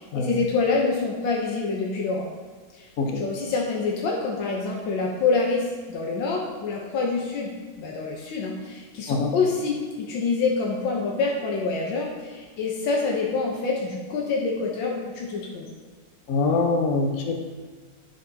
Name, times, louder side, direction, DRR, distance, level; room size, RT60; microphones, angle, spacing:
voice 1, 0.0-2.3 2.7-2.9 3.2-7.5 7.8-15.7, left 4 dB, 80° left, -2 dB, 1.7 m, -26 dB
voice 2, 16.3-17.3, left 3 dB, 50° left, 2 dB, 1.2 m, -23 dB
10.0 x 6.6 x 2.8 m, 1.4 s
omnidirectional pair, 2.1 m